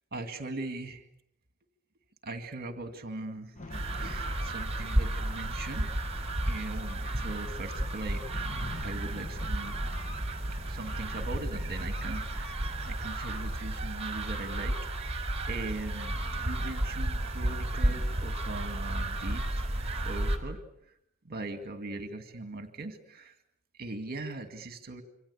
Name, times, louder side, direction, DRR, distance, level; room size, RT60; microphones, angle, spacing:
voice 1, 0.1-1.0 2.2-3.5 4.0-5.9 6.5-8.2 8.8-9.8 10.7-15.1 15.5-19.7 20.0-20.6 20.9-21.0 21.2-23.4 23.8-25.0, right 2 dB, 50° right, 8 dB, 2.2 m, -40 dB
sound 1, 3.5-12.9, left 2 dB, 35° left, 2.0 m, -47 dB
sound 2, 3.7-20.4, right 1 dB, 30° right, 4.7 m, -32 dB
27.0 x 25.5 x 8.4 m, 0.74 s
head